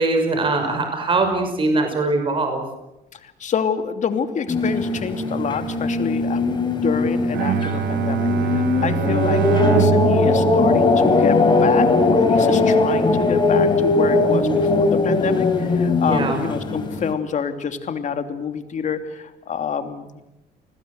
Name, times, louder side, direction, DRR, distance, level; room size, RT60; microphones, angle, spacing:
voice 1, 0.0-2.6 16.1-16.4, right 2 dB, 30° right, 5 dB, 6.0 m, -21 dB
voice 2, 3.4-6.4 6.7-20.2, left 7 dB, 45° left, 8 dB, 3.0 m, -27 dB
sound 1, 4.5-17.1, left 3 dB, 25° left, 4.6 m, -19 dB
Bowed string instrument, 7.3-11.7, right 10 dB, 75° right, 1.1 m, -24 dB
29.5 x 20.5 x 8.2 m, 0.91 s
cardioid pair, 110°, 17 cm